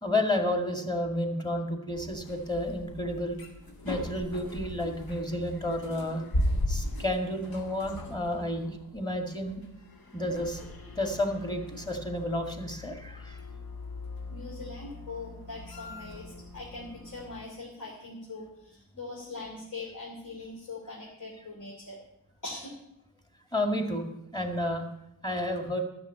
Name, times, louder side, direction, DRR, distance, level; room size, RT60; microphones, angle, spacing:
voice 1, 0.0-3.4 3.8-6.2 6.7-9.6 10.1-10.6 11.0-13.4 23.5-24.1 24.3-24.9 25.2-25.8, left 1 dB, 10° left, 4 dB, 2.1 m, -31 dB
sound 1, 1.9-17.4, left 1 dB, 85° left, 1.9 m, -38 dB
voice 2, 14.3-22.0 22.4-22.7, left 3 dB, 60° left, -4 dB, 3.1 m, -42 dB
12.5 x 6.7 x 8.7 m, 0.85 s
wide cardioid pair, 85°, 35 cm